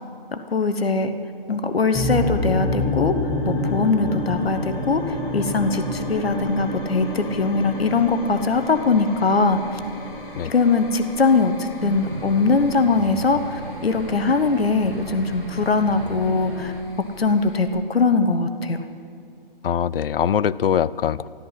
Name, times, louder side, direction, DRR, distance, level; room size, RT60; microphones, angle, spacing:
voice 1, 0.3-1.1 1.5-3.2 3.5-5.0 5.3-9.6 10.4-16.7 17.2-18.8, left 4 dB, 90° left, 8 dB, 1.2 m, -21 dB
sound 1, 1.9-17.7, left 1 dB, 10° left, 1.3 m, -30 dB
sound 2, 11.8-16.8, right 4 dB, 80° right, 1.4 m, -36 dB
voice 2, 19.6-21.3, left 8 dB, 70° left, 19 dB, 0.5 m, -22 dB
13.5 x 13.5 x 5.7 m, 2.5 s
hypercardioid pair, 150°, 29 cm